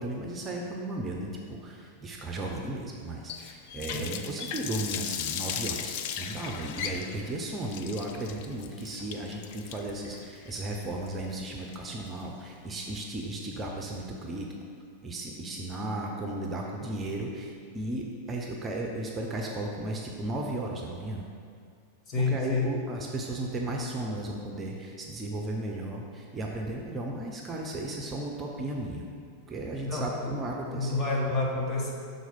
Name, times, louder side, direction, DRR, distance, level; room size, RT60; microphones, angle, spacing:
voice 1, 0.0-14.5 15.0-21.2 22.3-29.0 29.5-31.0, right 1 dB, 20° right, 0 dB, 0.7 m, -35 dB
Water tap faucet, 3.3-12.2, left 8 dB, 50° left, 0.4 m, -37 dB
voice 2, 3.9-4.3 22.1-22.8 29.8-30.4 30.7-31.9, left 3 dB, 30° left, -2 dB, 1.3 m, -29 dB
6.3 x 4.0 x 5.3 m, 2.3 s
figure-of-eight pair, 90°, 0 cm